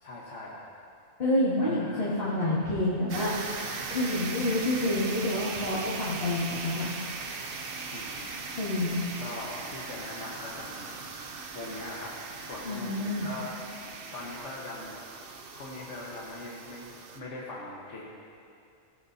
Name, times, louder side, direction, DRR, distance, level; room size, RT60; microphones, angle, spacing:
voice 1, 0.0-0.6 1.6-2.3 7.9-8.4 9.2-11.0 11.5-12.1 12.5-13.6 14.1-15.0 15.5-16.9 17.1-18.1, left 2 dB, 80° left, -5 dB, 1.6 m, -41 dB
voice 2, 1.2-3.5 3.9-6.9 8.6-9.0 12.6-13.3, left 1 dB, 55° left, -11 dB, 2.4 m, -28 dB
sound 1, 3.1-17.2, right 4 dB, 55° right, 0.9 m, -39 dB
17.0 x 14.0 x 2.8 m, 2.5 s
omnidirectional pair, 1.2 m